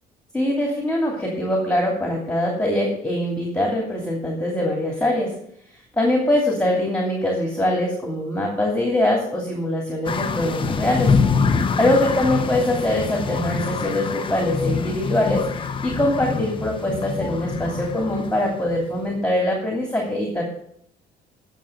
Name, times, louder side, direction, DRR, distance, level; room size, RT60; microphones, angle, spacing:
voice 1, 0.3-5.3 6.0-11.1 11.5-20.4, left 1 dB, 5° left, -1 dB, 2.7 m, -23 dB
sound 1, 10.0-19.1, left 5 dB, 30° left, 0.9 m, -25 dB
9.3 x 6.5 x 7.8 m, 0.69 s
cardioid pair, 110°, 17 cm